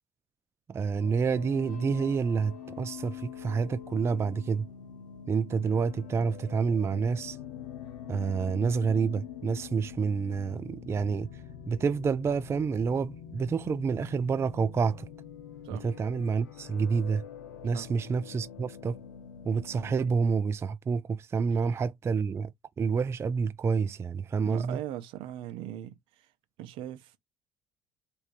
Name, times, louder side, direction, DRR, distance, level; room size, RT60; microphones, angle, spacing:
voice 1, 0.7-4.7 5.3-7.4 8.1-11.3 11.7-15.1 15.7-17.2 17.6-19.0 19.4-22.5 22.8-24.8, right 5 dB, 30° right, 0.3 m, -28 dB
sound 1, 1.0-20.2, left 8 dB, 85° left, 0.6 m, -45 dB
voice 2, 24.4-26.0 26.6-27.2, right 12 dB, 70° right, 0.6 m, -39 dB
3.2 x 2.6 x 2.5 m
hypercardioid pair, 65°, 9 cm